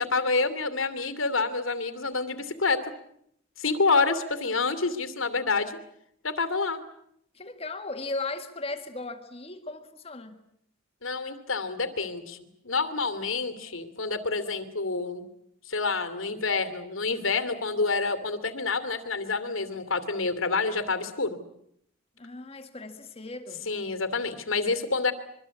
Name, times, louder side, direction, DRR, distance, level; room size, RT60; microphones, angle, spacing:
voice 1, 0.0-2.8 3.6-5.8 6.2-6.8 11.0-15.3 15.7-21.4 23.7-25.1, left 4 dB, 90° left, 2.8 m, -28 dB
voice 2, 7.3-10.4 22.2-23.7, left 2 dB, 30° left, 1.9 m, -37 dB
26.0 x 23.5 x 8.4 m
head